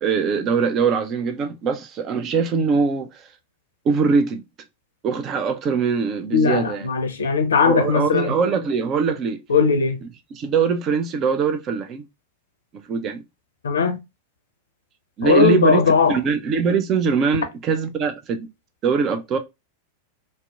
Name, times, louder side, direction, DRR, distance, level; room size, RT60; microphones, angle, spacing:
voice 1, 0.0-3.3 3.8-4.4 5.0-6.9 7.7-9.4 10.3-12.1 12.9-13.2 15.2-18.5 18.8-19.4, right 5 dB, 30° right, 0.4 m, -22 dB
voice 2, 6.3-8.3 9.5-10.0 13.6-14.0 15.2-16.1, left 5 dB, 65° left, 0.5 m, -18 dB
2.7 x 2.1 x 2.2 m
figure-of-eight pair, 90°, 0 cm